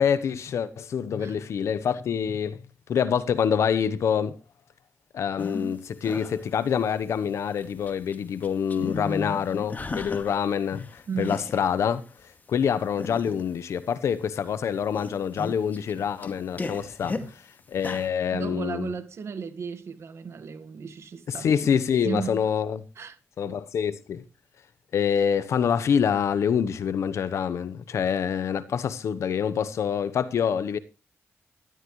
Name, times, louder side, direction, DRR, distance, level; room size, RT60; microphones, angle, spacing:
voice 1, 0.0-2.6 2.9-4.3 5.1-12.0 12.5-17.3 17.7-18.9 21.4-22.8 23.4-24.2 24.9-30.8, left 7 dB, 80° left, 1.0 m, -26 dB
sound 1, 5.4-5.8 6.0-7.1 7.5-8.2 8.4-10.5 10.7-11.7 12.2-12.3 12.9-13.5 14.2-14.5 14.8-17.3 17.7-18.1, left 3 dB, 35° left, 2.1 m, -36 dB
voice 2, 11.1-11.4 17.1-17.3 18.3-22.4 22.9-23.2, right 6 dB, 70° right, 1.7 m, -35 dB
13.0 x 12.5 x 3.2 m
cardioid pair, 70°, 5 cm